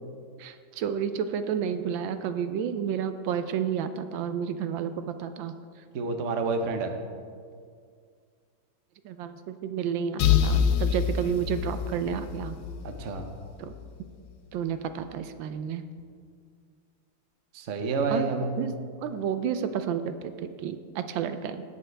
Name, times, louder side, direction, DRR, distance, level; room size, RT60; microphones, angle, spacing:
voice 1, 0.4-5.5 9.0-12.6 13.6-13.7 14.5-15.8 18.1-18.3 18.6-18.7 19.0-21.6, right 8 dB, 85° right, 10 dB, 1.3 m, -31 dB
voice 2, 5.9-6.9 12.8-13.3 17.5-18.6, right 4 dB, 55° right, 6 dB, 0.9 m, -29 dB
sound 1, 10.2-13.9, left 8 dB, 80° left, 1.3 m, -26 dB
18.0 x 6.7 x 3.4 m, 2.1 s
omnidirectional pair, 2.1 m